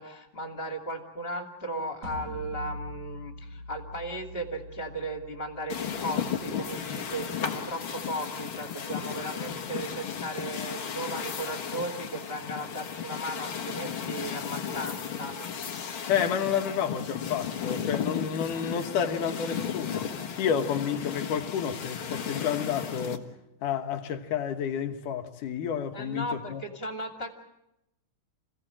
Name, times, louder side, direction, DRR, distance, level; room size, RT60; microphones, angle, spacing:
voice 1, 0.0-15.3 25.9-27.4, right 1 dB, 20° left, 2.4 m, -36 dB
sound 1, 2.0-7.1, equal, 50° right, 8.8 m, -43 dB
sound 2, 5.7-23.2, left 8 dB, 50° left, 1.9 m, -35 dB
voice 2, 16.1-20.1 20.4-23.3 23.6-26.6, left 8 dB, 75° left, 2.9 m, -30 dB
28.0 x 16.5 x 8.8 m
omnidirectional pair, 3.7 m